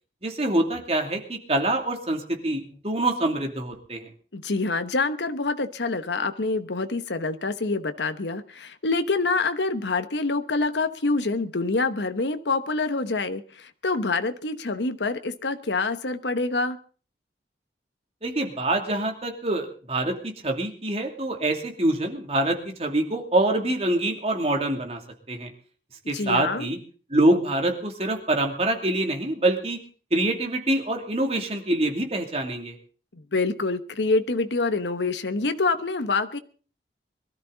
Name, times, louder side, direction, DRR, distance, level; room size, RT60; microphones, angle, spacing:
voice 1, 0.2-4.1 18.2-25.0 25.3-25.5 26.1-26.8 27.1-29.8 30.1-32.7, right 1 dB, 35° right, 3 dB, 2.7 m, -25 dB
voice 2, 4.3-16.8 26.1-26.7 33.3-36.4, left 3 dB, 80° left, 9 dB, 1.1 m, -26 dB
22.5 x 13.5 x 4.0 m, 0.41 s
head